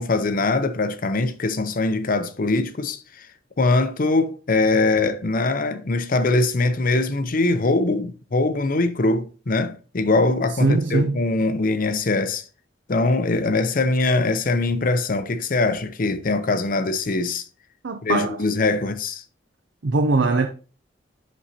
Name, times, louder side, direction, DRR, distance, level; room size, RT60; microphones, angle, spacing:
voice 1, 0.0-3.3 3.6-12.4 12.9-17.4 18.0-19.2, left 3 dB, 50° left, 0.6 m, -22 dB
voice 2, 10.6-11.2 17.8-18.4 19.8-20.5, right 3 dB, 80° right, 0.6 m, -21 dB
8.2 x 6.3 x 2.8 m
head